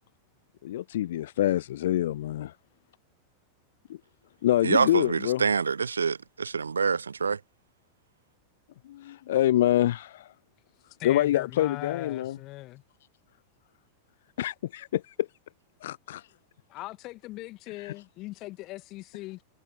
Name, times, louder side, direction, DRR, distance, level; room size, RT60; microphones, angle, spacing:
voice 1, 0.6-2.5 3.9-4.0 4.4-5.4 8.9-10.3 11.0-12.4 14.4-15.3 15.8-16.2 17.8-17.9, left 13 dB, 60° left, 0.6 m, -26 dB
voice 2, 4.6-7.4, right 5 dB, 75° right, 0.9 m, -26 dB
voice 3, 11.0-12.8 16.7-19.4, left 19 dB, 40° left, 2.1 m, -40 dB
figure-of-eight pair, 90°, 0 cm